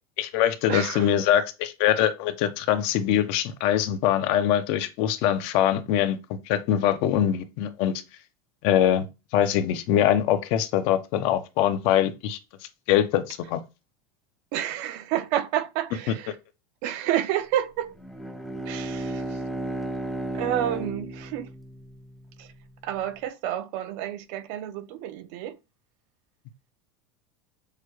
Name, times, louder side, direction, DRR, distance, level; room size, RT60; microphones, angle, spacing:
voice 1, 0.2-8.0 8.6-9.1 9.3-12.4 12.9-13.6, left 10 dB, 50° left, 0.6 m, -23 dB
voice 2, 0.7-1.1 14.5-16.4 16.8-17.9 18.7-19.4 20.3-21.5 22.4-22.5 22.8-25.6, right 11 dB, 50° right, 0.5 m, -29 dB
Bowed string instrument, 17.9-22.5, right 1 dB, ahead, 0.4 m, -34 dB
6.5 x 2.2 x 3.0 m
supercardioid pair, 170°, 13 cm